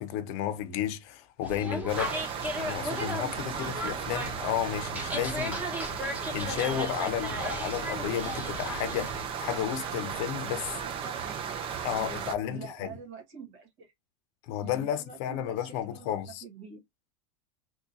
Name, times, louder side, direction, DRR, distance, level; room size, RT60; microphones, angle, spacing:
voice 1, 0.0-2.2 2.6-5.8 6.3-10.8 11.8-12.9 14.4-16.4, left 10 dB, 55° left, 0.7 m, -32 dB
sound 1, 1.4-9.3, equal, 10° right, 1.0 m, -36 dB
sound 2, 1.9-12.3, right 7 dB, 30° right, 0.6 m, -36 dB
voice 2, 10.8-11.5 11.8-13.9 14.6-16.8, right 5 dB, 60° right, 1.8 m, -46 dB
3.7 x 2.4 x 2.7 m
supercardioid pair, 140°, 17 cm